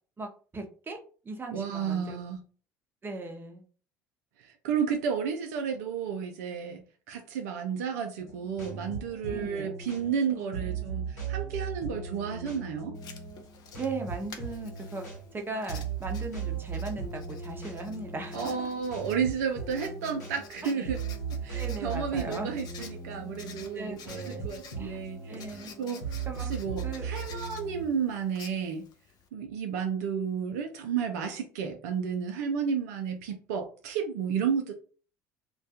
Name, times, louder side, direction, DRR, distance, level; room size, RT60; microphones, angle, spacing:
voice 1, 0.2-1.0 1.2-2.2 3.0-3.6 9.3-9.7 13.7-15.0 15.3-18.7 20.6-20.9 21.5-22.5 23.7-24.5 24.8-25.7 26.3-26.5 26.8-27.1, right 3 dB, 25° right, 0.7 m, -38 dB
voice 2, 1.5-2.4 4.4-12.9 18.3-21.0 21.4-25.3 25.8-28.9 29.3-34.7, right 7 dB, 70° right, 0.4 m, -32 dB
sound 1, 8.2-27.9, right 5 dB, 85° left, 0.9 m, -38 dB
Writing, 12.9-29.3, left 6 dB, 50° left, 0.4 m, -51 dB
2.2 x 2.1 x 2.7 m
figure-of-eight pair, 60°, 9 cm